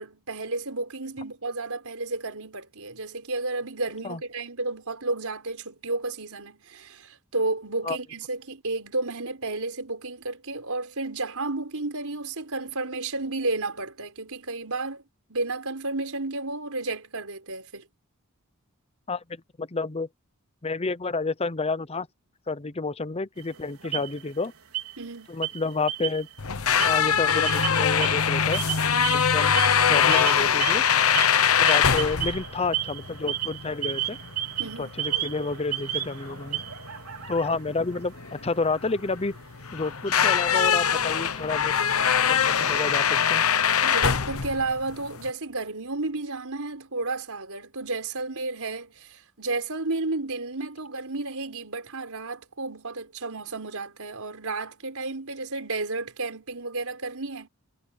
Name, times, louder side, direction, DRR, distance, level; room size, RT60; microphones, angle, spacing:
voice 1, 0.0-15.0 15.3-17.9 25.0-25.3 34.6-34.9 43.8-57.5, right 3 dB, 70° right, 5.2 m, -32 dB
voice 2, 19.1-20.1 20.6-22.1 22.5-24.5 25.3-26.3 26.8-28.6 29.1-29.6 29.9-30.8 31.6-34.2 34.8-36.6 37.3-39.3 39.7-41.7 42.3-43.4, left 3 dB, 30° left, 0.8 m, -30 dB
sound 1, 23.4-24.5 24.7-25.1 25.4-26.4 26.7-43.1, right 12 dB, 90° right, 4.4 m, -35 dB
sound 2, 26.4-45.3, left 7 dB, 70° left, 1.1 m, -23 dB
head